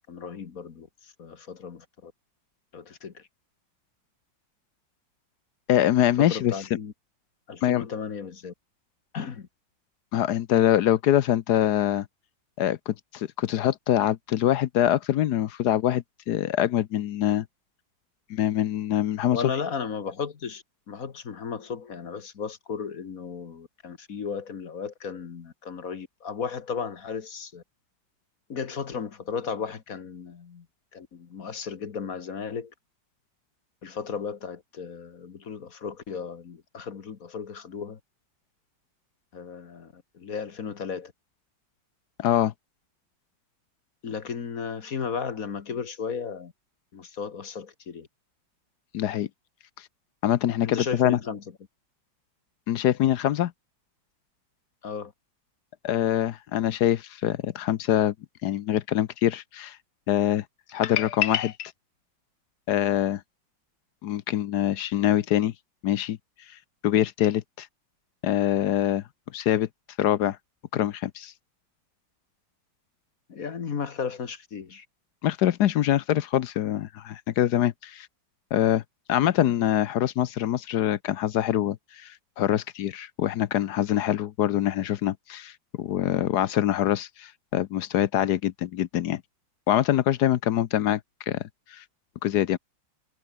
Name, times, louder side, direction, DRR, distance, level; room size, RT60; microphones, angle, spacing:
voice 1, 0.1-2.1 2.7-3.3 6.2-6.9 7.5-8.5 9.1-9.5 19.3-27.6 28.5-30.7 30.9-32.7 33.8-38.0 39.3-41.1 44.0-46.5 46.9-48.1 50.6-51.4 54.8-55.1 73.3-74.8, left 6 dB, 50° left, 1.7 m, -35 dB
voice 2, 5.7-6.5 7.6-7.8 10.1-12.1 12.6-17.4 18.3-19.4 42.2-42.5 48.9-49.3 50.2-51.2 52.7-53.5 55.8-58.1 58.4-59.8 60.1-60.4 60.7-61.7 62.7-63.2 64.0-65.5 65.8-66.2 66.8-67.7 68.2-69.0 69.3-69.7 70.0-70.4 70.7-71.3 75.2-78.1 78.5-78.8 79.1-89.2 89.7-91.0 91.3-91.4 91.7-91.8 92.2-92.6, left 12 dB, 65° left, 1.2 m, -24 dB
omnidirectional pair, 2.1 m